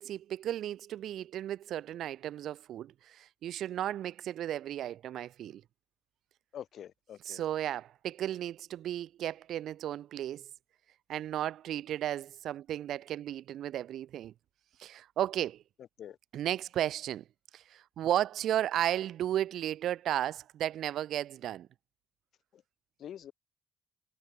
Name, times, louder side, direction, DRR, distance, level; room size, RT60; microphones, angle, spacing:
voice 1, 0.0-5.6 7.2-10.5 11.1-14.3 14.8-15.6 16.3-17.2 17.5-21.7, right 11 dB, 75° right, 0.7 m, -34 dB
voice 2, 6.5-7.4 16.0-16.2 23.0-23.3, left 10 dB, 65° left, 0.7 m, -45 dB
cardioid pair, 90°, 0 cm